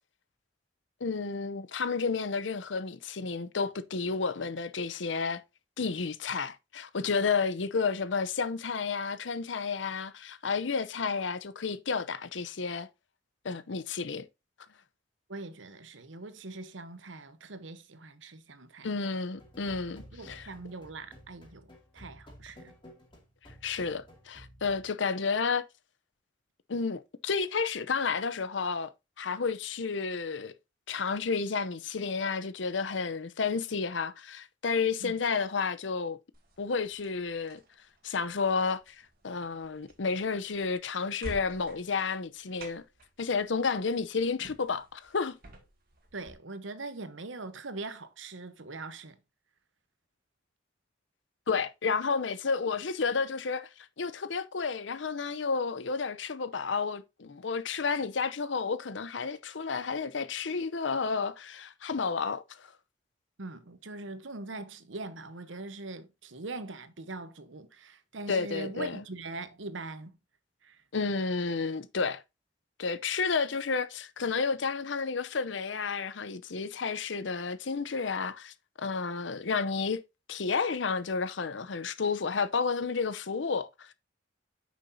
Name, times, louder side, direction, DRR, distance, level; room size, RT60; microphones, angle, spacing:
voice 1, 1.0-5.4 5.8-12.9 13.4-14.3 18.8-20.5 23.6-25.6 26.7-28.9 29.2-30.5 30.9-36.2 36.6-37.6 38.0-39.0 39.2-42.8 43.2-45.4 51.5-53.7 54.0-62.7 68.3-69.0 70.9-72.2 72.8-80.0 80.3-83.9, left 5 dB, 75° left, 0.7 m, -31 dB
voice 2, 15.3-18.9 20.1-22.7 35.0-35.2 46.1-49.2 63.4-70.2 70.6-70.8, right 3 dB, 80° right, 1.0 m, -42 dB
sound 1, 19.4-24.9, equal, 25° left, 2.4 m, -53 dB
sound 2, 36.3-46.3, right 1 dB, 50° right, 2.1 m, -51 dB
9.3 x 6.2 x 2.7 m
head